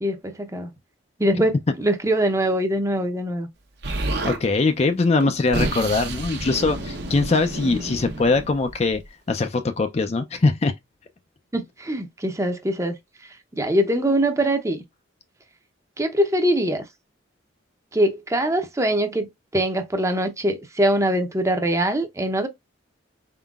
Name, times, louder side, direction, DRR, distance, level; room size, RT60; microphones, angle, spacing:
voice 1, 0.0-0.7 1.2-3.5 11.5-12.9 13.5-14.8 16.0-16.9 17.9-22.5, right 1 dB, 15° right, 0.6 m, -23 dB
Explosion, 3.8-4.4 5.2-9.1, right 2 dB, 55° right, 0.9 m, -30 dB
voice 2, 4.2-9.0 9.3-10.7, left 3 dB, 30° left, 0.4 m, -22 dB
4.4 x 3.7 x 2.3 m
head